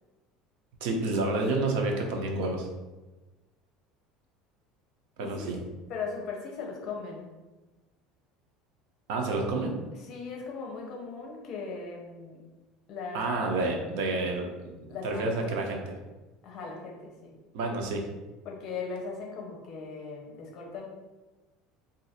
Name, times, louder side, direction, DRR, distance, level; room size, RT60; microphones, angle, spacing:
voice 1, 0.8-2.7 5.2-5.6 9.1-9.8 13.1-15.8 17.5-18.0, right 2 dB, 75° right, 2 dB, 0.6 m, -29 dB
voice 2, 5.2-5.5 5.9-7.3 10.0-12.4 12.9-13.5 14.9-15.6 16.4-17.3 18.4-20.9, left 4 dB, 45° left, 0 dB, 0.6 m, -38 dB
2.6 x 2.4 x 4.1 m, 1.2 s
cardioid pair, 155°, 0 cm